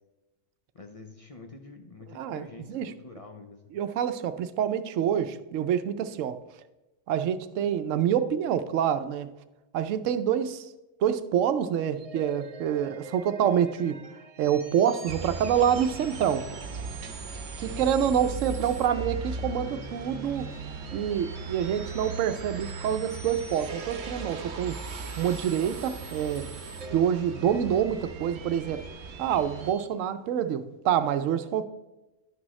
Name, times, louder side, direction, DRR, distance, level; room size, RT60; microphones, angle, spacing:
voice 1, 0.7-3.6 17.6-17.9, left 3 dB, 40° left, 0.6 m, -46 dB
voice 2, 2.1-2.9 3.7-6.4 7.1-9.3 9.7-10.7 11.0-14.0 14.4-16.5 17.6-20.5 20.9-24.8 25.2-26.5 26.9-28.8 29.2-31.7, right 9 dB, 90° right, 1.0 m, -27 dB
sound 1, 12.0-29.9, right 4 dB, 45° right, 0.5 m, -46 dB
sound 2, 15.1-29.7, right 4 dB, 65° right, 1.1 m, -38 dB
11.0 x 6.1 x 3.1 m
omnidirectional pair, 1.3 m